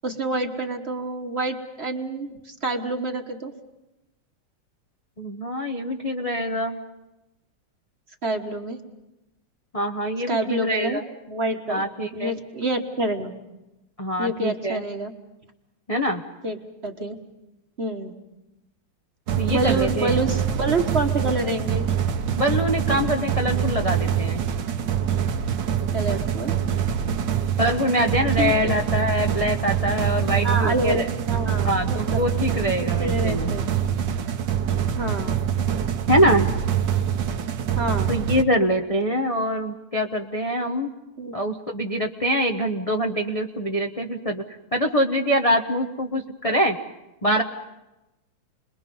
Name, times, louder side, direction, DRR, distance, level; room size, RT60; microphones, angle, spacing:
voice 1, 0.0-3.5 8.2-8.8 10.3-11.0 11.3-11.9 12.1-13.3 14.2-15.1 16.4-16.6 16.8-17.2 17.8-18.1 19.5-21.9 25.9-26.6 28.4-28.7 30.4-32.2 32.8-33.7 34.9-35.4 37.8-38.2 41.2-41.4, right 2 dB, 35° right, 4 dB, 1.3 m, -27 dB
voice 2, 5.2-6.8 9.7-11.0 11.7-12.4 14.0-14.8 15.9-16.2 19.4-20.1 22.4-24.4 27.6-31.1 31.6-33.5 36.1-36.5 38.1-40.9 41.3-44.4 44.7-46.8 47.2-47.4, equal, 35° left, 2 dB, 0.6 m, -24 dB
sound 1, 19.3-38.4, right 8 dB, 60° right, 1.5 m, -25 dB
29.5 x 21.5 x 5.5 m, 0.98 s
omnidirectional pair, 2.4 m